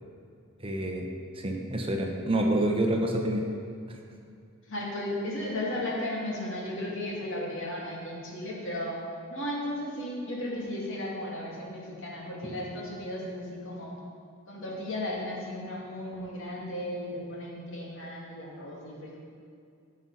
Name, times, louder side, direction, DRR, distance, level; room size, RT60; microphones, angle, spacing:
voice 1, 0.6-1.1 1.3-3.4 3.9-4.0 12.4-12.5, right 1 dB, 25° right, 1 dB, 1.1 m, -28 dB
voice 2, 4.7-9.0 9.3-13.9 14.5-19.2, left 1 dB, 60° left, -3 dB, 2.6 m, -35 dB
16.0 x 6.3 x 5.7 m, 2.4 s
head